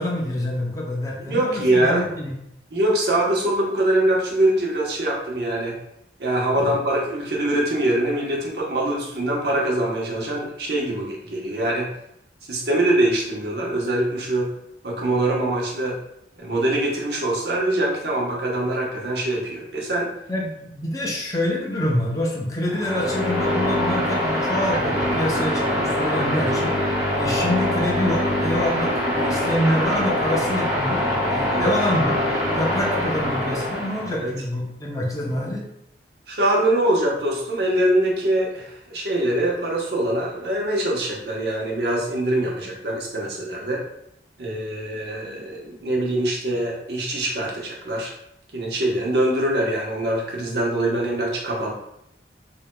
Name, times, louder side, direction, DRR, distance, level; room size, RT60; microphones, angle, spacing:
voice 1, 0.0-2.3 6.5-6.8 20.3-26.8 27.1-32.2 32.5-35.6, left 1 dB, 20° left, -1 dB, 0.6 m, -26 dB
voice 2, 1.2-2.0 2.7-5.8 6.2-11.9 12.5-14.5 14.8-16.0 16.4-20.1 31.5-31.7 34.2-34.3 36.3-43.8 44.4-48.1 48.5-51.7, right 1 dB, 65° right, -3 dB, 1.0 m, -23 dB
sound 1, 22.6-34.2, left 1 dB, 15° right, 1.4 m, -23 dB
4.4 x 3.4 x 2.2 m, 0.79 s
head